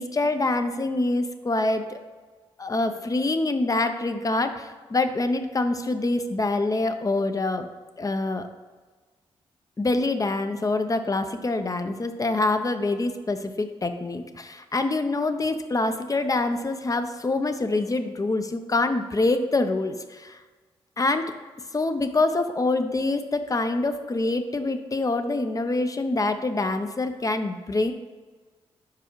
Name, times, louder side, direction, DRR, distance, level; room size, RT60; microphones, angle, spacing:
voice 1, 0.0-2.0 2.6-7.7 8.0-8.5 9.8-20.4 21.0-21.3 21.7-27.9, left 2 dB, 30° left, 8 dB, 0.6 m, -25 dB
4.8 x 4.8 x 4.6 m, 1.3 s
supercardioid pair, 45°, 11 cm